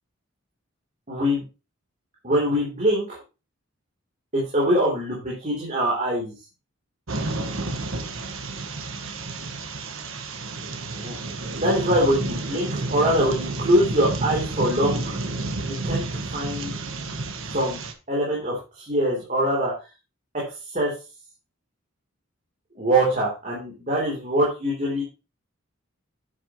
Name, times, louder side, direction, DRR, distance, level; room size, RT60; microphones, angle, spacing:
voice 1, 1.1-1.4 2.2-3.1 4.3-6.3 11.0-11.1 11.6-15.1 15.6-16.7 17.5-17.8 18.1-19.7 20.7-20.9 22.8-25.0, right 1 dB, 35° right, -5 dB, 3.3 m, -23 dB
sound 1, 7.1-17.9, right 2 dB, 75° right, 1.4 m, -30 dB
9.5 x 7.6 x 3.0 m, 0.30 s
head